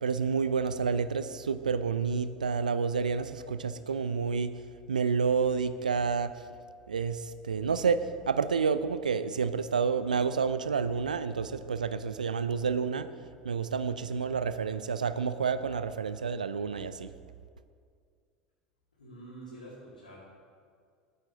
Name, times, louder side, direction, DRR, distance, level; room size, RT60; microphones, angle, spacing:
voice 1, 0.0-4.6 4.9-6.3 6.9-8.0 8.3-13.1 13.4-17.1, right 5 dB, 80° right, 13 dB, 0.4 m, -29 dB
voice 2, 19.0-20.2, right 1 dB, 80° left, -9 dB, 2.8 m, -47 dB
14.0 x 8.4 x 3.9 m, 2.2 s
figure-of-eight pair, 75°, 4 cm